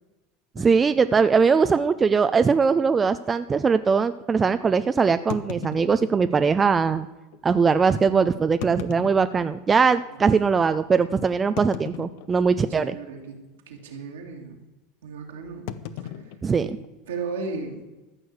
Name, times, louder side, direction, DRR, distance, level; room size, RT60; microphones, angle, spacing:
sound 1, 0.6-0.7 1.5-1.6 1.9-2.0 2.6-2.7 5.3-6.5 7.3-7.4 8.4-9.9 10.4-10.5 11.6-12.6 12.9-13.3 13.5-13.9 15.7-17.3, left 10 dB, 65° left, 0.8 m, -38 dB
voice 1, 0.6-7.1 7.4-13.0 16.4-16.7, right 5 dB, 25° right, 11 dB, 0.6 m, -21 dB
voice 2, 12.7-13.4 13.7-14.6 15.0-15.7 16.0-16.3 16.6-16.7 17.1-17.8, right 4 dB, 80° right, 1 dB, 2.6 m, -35 dB
14.0 x 6.5 x 8.0 m, 1.1 s
hypercardioid pair, 85°, 0 cm